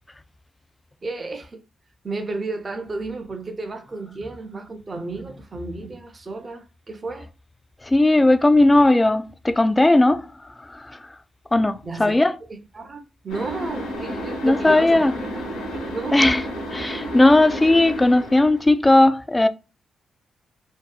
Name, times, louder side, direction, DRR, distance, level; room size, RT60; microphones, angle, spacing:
voice 1, 1.0-1.6 2.0-7.3 11.8-12.2 12.5-15.4 15.9-16.2, right 3 dB, 40° right, 0.6 m, -33 dB
voice 2, 7.8-10.3 10.6-11.1 11.5-12.3 14.4-15.1 16.1-16.4 16.7-19.5, left 2 dB, 20° left, 0.3 m, -17 dB
sound 1, 13.3-18.7, equal, 90° left, 0.8 m, -32 dB
2.6 x 2.1 x 2.3 m
supercardioid pair, 50°, 0 cm